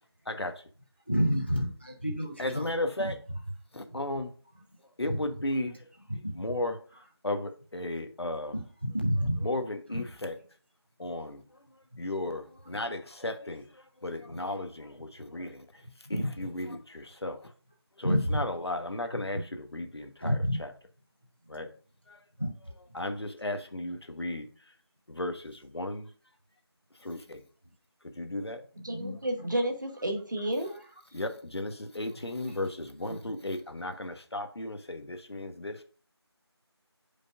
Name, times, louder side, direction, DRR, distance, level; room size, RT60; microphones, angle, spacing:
voice 1, 0.2-0.6 2.4-3.2 3.7-4.3 4.8-8.6 9.4-10.4 11.0-17.5 18.0-20.7 21.5-21.7 22.1-22.2 22.8-24.7 25.1-26.1 26.9-27.4 28.0-28.6 31.1-35.8, left 1 dB, 70° left, 1.1 m, -35 dB
voice 2, 1.1-2.6 6.1-6.4 8.8-9.5 9.9-10.0 14.3-14.4 16.1-16.3 18.0-18.4 20.2-20.6 22.4-22.5, equal, 25° left, 0.5 m, -28 dB
voice 3, 28.8-30.7, right 1 dB, 45° right, 1.1 m, -31 dB
7.7 x 5.2 x 2.5 m
figure-of-eight pair, 180°, 14 cm